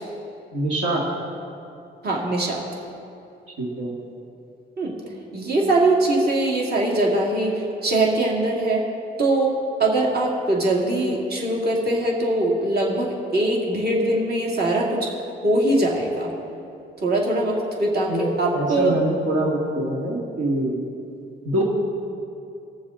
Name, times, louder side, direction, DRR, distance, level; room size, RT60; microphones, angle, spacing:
voice 1, 0.5-1.0 3.6-3.9 18.1-20.7 21.5-21.6, right 1 dB, 80° right, -3 dB, 1.9 m, -24 dB
voice 2, 2.0-2.6 4.8-5.0 5.3-8.8 9.2-15.1 15.4-16.3 17.0-19.0, right 2 dB, 55° right, -2 dB, 2.5 m, -22 dB
21.0 x 7.1 x 3.8 m, 2.7 s
cardioid pair, 90°, 20 cm